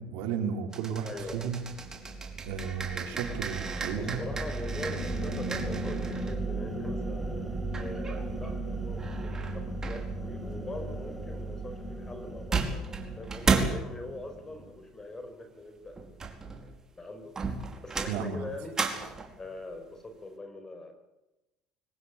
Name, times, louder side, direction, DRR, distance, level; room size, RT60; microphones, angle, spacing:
voice 1, 0.0-1.6 2.4-4.2 18.1-18.5, right 7 dB, 75° right, 4 dB, 4.8 m, -34 dB
sound 1, 0.7-6.4 7.7-8.5 9.0-10.1 12.2-12.3 12.5-13.9 16.0-16.8 17.4-19.4, right 4 dB, 25° right, 4.8 m, -34 dB
voice 2, 1.0-1.5 4.0-7.3 7.8-12.7 13.2-17.4 17.8-18.8 19.4-20.9, left 2 dB, 25° left, 8 dB, 5.3 m, -43 dB
sound 2, 1.2-14.7, right 2 dB, ahead, 5.4 m, -36 dB
23.5 x 19.0 x 8.7 m, 0.97 s
supercardioid pair, 80°, 2 cm